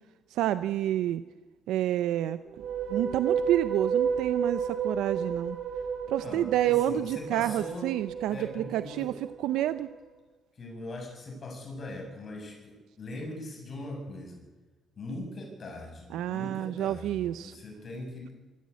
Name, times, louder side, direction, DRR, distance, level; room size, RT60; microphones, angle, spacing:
voice 1, 0.3-1.2 1.7-2.4 2.9-5.6 6.1-9.9 16.1-17.5, right 12 dB, 90° right, 13 dB, 0.6 m, -29 dB
sound 1, 2.5-9.8, right 6 dB, 75° right, 3.5 m, -32 dB
voice 2, 6.2-7.9 8.3-9.1 10.6-14.4 15.0-18.3, left 1 dB, 45° left, 1 dB, 6.9 m, -41 dB
24.0 x 14.0 x 8.3 m, 1.3 s
cardioid pair, 90°, 0 cm